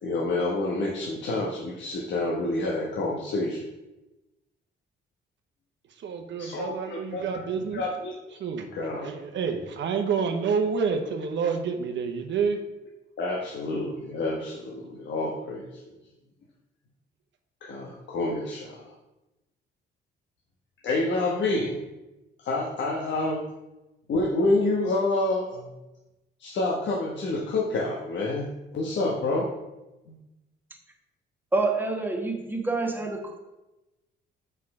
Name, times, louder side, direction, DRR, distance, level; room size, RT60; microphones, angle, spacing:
voice 1, 0.0-3.7 6.4-7.4 7.7-8.1 8.7-9.1 13.2-15.7 17.6-18.9 20.8-21.8 22.4-23.5 24.1-25.7 26.4-28.5 28.7-29.5 30.1-30.2, left 2 dB, 65° left, -3 dB, 1.3 m, -28 dB
voice 2, 6.0-7.8 8.4-8.7 9.0-12.6, right 5 dB, 70° right, 5 dB, 1.0 m, -28 dB
voice 3, 31.5-33.4, right 3 dB, 10° right, 2 dB, 1.4 m, -27 dB
6.5 x 5.5 x 4.8 m, 1.0 s
cardioid pair, 90°, 20 cm